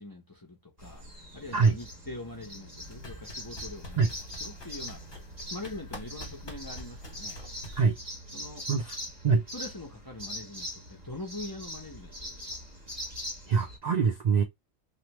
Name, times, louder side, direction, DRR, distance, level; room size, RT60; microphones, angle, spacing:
voice 1, 0.0-4.1 4.4-5.2 5.5-7.4 8.3-8.6 9.5-12.5, left 2 dB, 25° left, 0.6 m, -43 dB
Walnford Birds, 0.8-13.8, equal, 35° right, 1.1 m, -42 dB
sound 1, 2.8-7.8, equal, 45° left, 1.3 m, -46 dB
voice 2, 13.5-14.4, right 5 dB, 65° right, 0.4 m, -24 dB
3.3 x 2.3 x 2.9 m
omnidirectional pair, 1.3 m